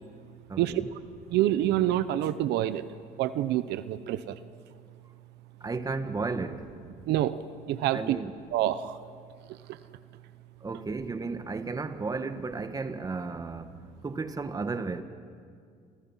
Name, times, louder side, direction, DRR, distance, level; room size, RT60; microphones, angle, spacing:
voice 1, 0.5-0.9 5.6-6.7 7.9-8.3 10.6-13.8 14.0-15.0, right 4 dB, 20° right, 1.5 m, -33 dB
voice 2, 1.3-2.8 3.2-4.2 7.1-7.4 7.7-8.2 8.5-8.9, right 13 dB, 85° right, 0.9 m, -26 dB
30.0 x 25.5 x 5.7 m
cardioid pair, 110°, 17 cm